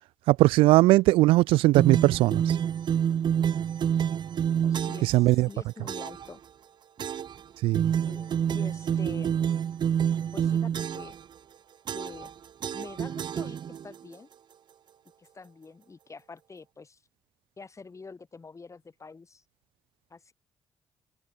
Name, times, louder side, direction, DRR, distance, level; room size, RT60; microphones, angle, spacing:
voice 1, 0.3-2.5 5.1-5.5 7.6-7.8, right 19 dB, 85° right, 0.5 m, -19 dB
sound 1, 1.7-5.2 5.9-6.3 7.0-7.4 7.7-11.2 11.9-12.3 12.6-14.0, right 8 dB, 55° right, 0.8 m, -28 dB
voice 2, 4.6-6.4 8.1-9.3 10.3-11.2 11.9-12.3 12.7-14.3 15.2-17.0 17.6-19.4 20.1-20.3, left 4 dB, 35° left, 4.8 m, -46 dB
supercardioid pair, 60°, 9 cm